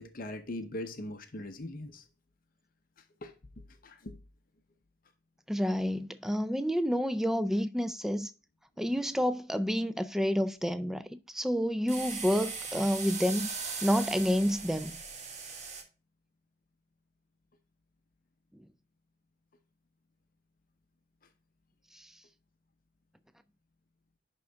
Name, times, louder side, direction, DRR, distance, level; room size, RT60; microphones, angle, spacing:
voice 1, 0.0-2.0 3.2-3.3 3.8-4.1, left 1 dB, 45° left, 0.7 m, -40 dB
voice 2, 5.5-8.3 8.8-15.0, equal, ahead, 0.3 m, -29 dB
sound 1, 11.9-15.8, right 5 dB, 35° right, 1.3 m, -39 dB
11.0 x 3.8 x 3.4 m
head